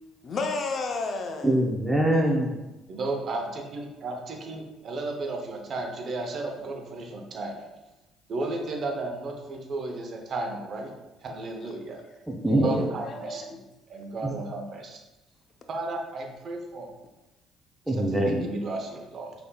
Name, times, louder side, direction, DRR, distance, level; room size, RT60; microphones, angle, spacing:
voice 1, 0.2-1.5 12.5-13.6, left 3 dB, 50° left, 4 dB, 0.6 m, -32 dB
voice 2, 1.4-2.6 12.3-12.8 14.2-14.3 17.9-18.5, right 1 dB, 10° right, 0 dB, 0.6 m, -24 dB
voice 3, 2.9-7.6 8.3-10.9 11.2-12.0 12.6-13.6 13.9-15.0 15.7-16.9 17.9-19.3, right 2 dB, 50° right, 2 dB, 0.8 m, -34 dB
5.4 x 3.5 x 2.3 m, 1.0 s
cardioid pair, 85°, 0 cm